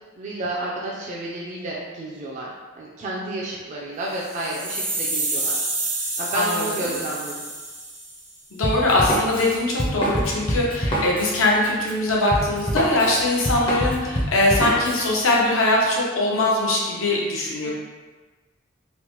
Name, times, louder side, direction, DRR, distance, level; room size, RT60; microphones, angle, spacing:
voice 1, 0.2-2.5 2.8-7.5 17.6-17.7, right 1 dB, 35° right, -4 dB, 0.3 m, -31 dB
sound 1, 4.1-8.3, right 2 dB, 65° right, 0.8 m, -28 dB
voice 2, 6.3-7.0 8.5-17.7, left 2 dB, 90° left, -3 dB, 0.7 m, -21 dB
Drum kit, 8.6-15.1, equal, 25° left, 0.4 m, -26 dB
3.0 x 2.0 x 2.9 m, 1.3 s
head